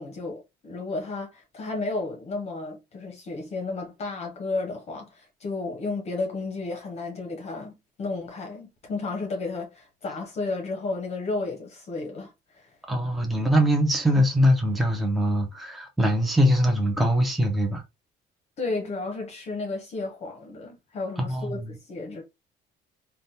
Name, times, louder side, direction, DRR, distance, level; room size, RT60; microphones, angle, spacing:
voice 1, 0.0-12.7 18.6-22.2, left 3 dB, 35° left, 0.8 m, -33 dB
voice 2, 12.9-17.8 21.2-21.7, equal, ahead, 0.5 m, -22 dB
3.4 x 2.2 x 2.7 m
cardioid pair, 145°, 18 cm